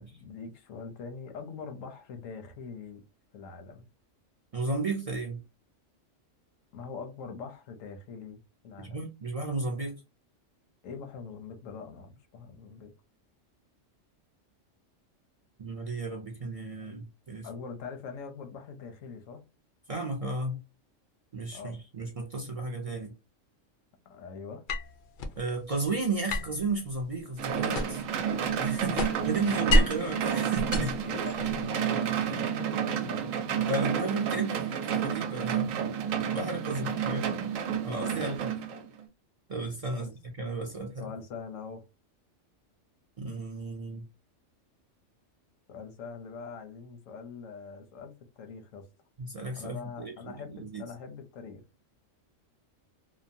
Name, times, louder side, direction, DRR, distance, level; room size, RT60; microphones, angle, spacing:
voice 1, 0.0-3.0 3.3-3.9 6.7-8.4 8.6-9.0 10.8-12.9 17.4-19.5 21.5-21.8 24.1-24.7 31.0-33.3 36.6-37.0 38.1-38.4 39.9-40.1 41.0-41.8 45.7-48.8 49.6-51.6, left 5 dB, 90° left, 1.1 m, -43 dB
voice 2, 4.5-5.4 8.8-10.0 15.6-17.5 19.9-20.6 21.3-23.1 25.4-28.0 28.6-31.1 32.2-32.4 33.7-37.4 37.8-38.5 39.5-40.1 40.4-41.1 43.2-44.0 49.2-50.9, right 3 dB, 55° right, 0.4 m, -34 dB
sound 1, 24.7-25.4 26.3-28.2 28.5-30.1 30.5-31.6, left 1 dB, 65° left, 0.5 m, -29 dB
sound 2, 27.4-39.0, right 8 dB, 90° right, 1.0 m, -30 dB
2.9 x 2.1 x 2.6 m
omnidirectional pair, 1.3 m